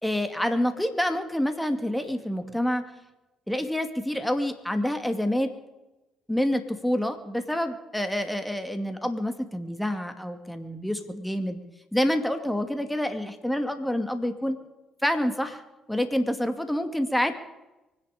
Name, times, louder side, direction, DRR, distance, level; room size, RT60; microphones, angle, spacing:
voice 1, 0.0-2.8 3.5-5.5 6.3-11.6 11.9-14.6 15.0-15.6 15.9-17.3, left 1 dB, 5° left, 7 dB, 2.4 m, -27 dB
24.0 x 10.5 x 5.2 m, 1.0 s
hypercardioid pair, 55°, 0 cm